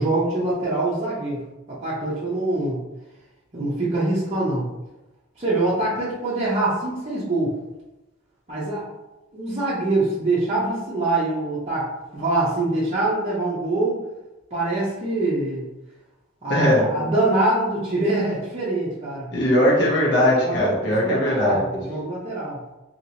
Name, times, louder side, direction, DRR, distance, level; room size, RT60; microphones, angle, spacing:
voice 1, 0.0-1.4 1.8-2.8 3.5-4.7 5.4-7.5 8.5-8.9 9.3-14.0 14.5-15.7 16.4-19.3 20.4-22.6, right 2 dB, 30° right, -9 dB, 0.7 m, -24 dB
voice 2, 16.5-16.9 19.3-21.6, left 1 dB, 55° left, -5 dB, 0.9 m, -19 dB
2.8 x 2.8 x 2.8 m, 1.0 s
head